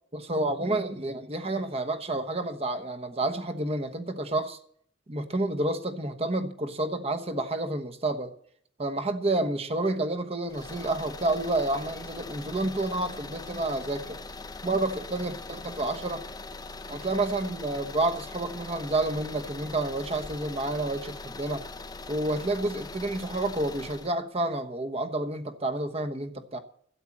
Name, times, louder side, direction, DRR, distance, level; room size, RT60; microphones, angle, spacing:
voice 1, 0.1-4.6 5.1-8.3 8.8-14.2 14.6-16.2 16.9-21.6 22.1-26.6, right 2 dB, 30° right, 1.1 m, -29 dB
sound 1, 10.5-24.2, left 3 dB, 20° left, 0.6 m, -41 dB
12.5 x 8.7 x 7.3 m
head